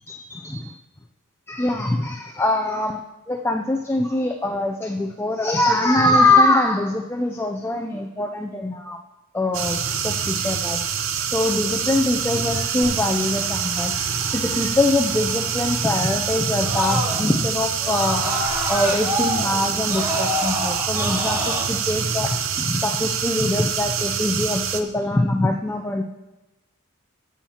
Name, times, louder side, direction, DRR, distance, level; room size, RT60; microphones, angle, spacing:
voice 1, 0.1-0.7 1.5-3.0 3.3-9.0 9.3-10.8 11.2-13.9 14.2-18.2 18.7-26.0, left 2 dB, 10° left, 4 dB, 0.4 m, -23 dB
sound 1, 9.5-24.8, right 7 dB, 65° right, 0.7 m, -26 dB
Screaming, 12.8-17.4 17.8-21.6, equal, 10° right, 1.6 m, -29 dB
20.5 x 7.1 x 2.9 m, 1.1 s
head